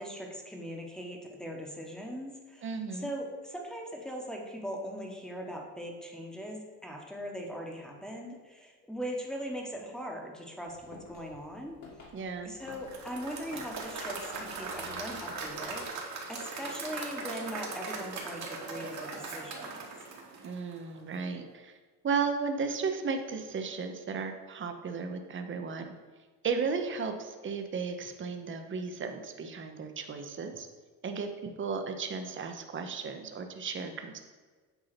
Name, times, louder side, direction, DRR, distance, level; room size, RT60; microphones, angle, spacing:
voice 1, 0.0-11.8 12.4-19.8, equal, ahead, 1 dB, 1.2 m, -40 dB
voice 2, 2.6-3.1 12.1-12.5 20.4-21.7 22.0-25.9 26.4-30.7 31.0-34.2, right 5 dB, 35° right, 6 dB, 0.8 m, -34 dB
sound 1, 10.7-15.9, left 2 dB, 45° left, 1.9 m, -53 dB
Applause / Crowd, 12.7-20.9, right 3 dB, 50° right, 1.5 m, -39 dB
8.0 x 2.8 x 5.8 m, 1.4 s
cardioid pair, 105°, 37 cm